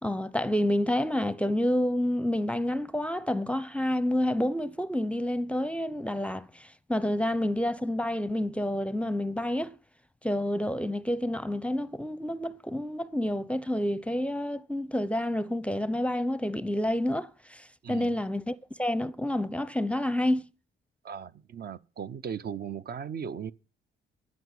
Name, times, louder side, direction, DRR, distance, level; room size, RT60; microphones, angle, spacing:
voice 1, 0.0-9.8 10.2-20.4, left 1 dB, 5° left, 0.6 m, -29 dB
voice 2, 21.0-23.5, right 7 dB, 50° right, 0.7 m, -37 dB
14.0 x 6.2 x 8.2 m
cardioid pair, 90°, 20 cm